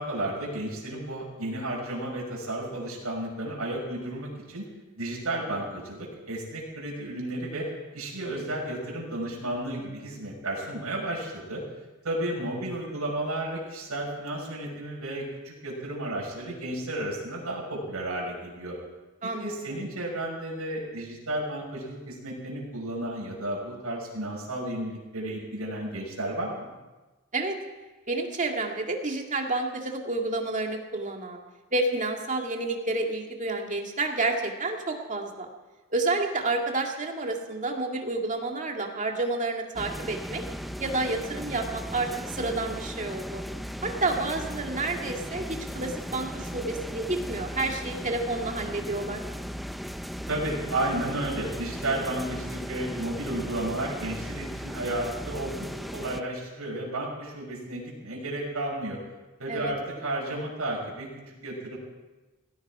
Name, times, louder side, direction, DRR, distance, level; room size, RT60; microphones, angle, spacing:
voice 1, 0.0-4.6 5.0-7.7 7.9-11.6 12.0-18.8 19.4-26.7 50.3-59.0 59.4-61.8, right 1 dB, 85° right, -3 dB, 5.8 m, -33 dB
voice 2, 19.2-19.8 27.3-27.6 28.1-31.4 31.7-35.5 35.9-40.4 40.8-43.4 43.8-49.2 59.5-59.7, right 2 dB, 35° right, 2 dB, 2.1 m, -30 dB
sound 1, 39.7-56.2, equal, ahead, 0.4 m, -37 dB
17.5 x 17.0 x 4.8 m, 1.2 s
head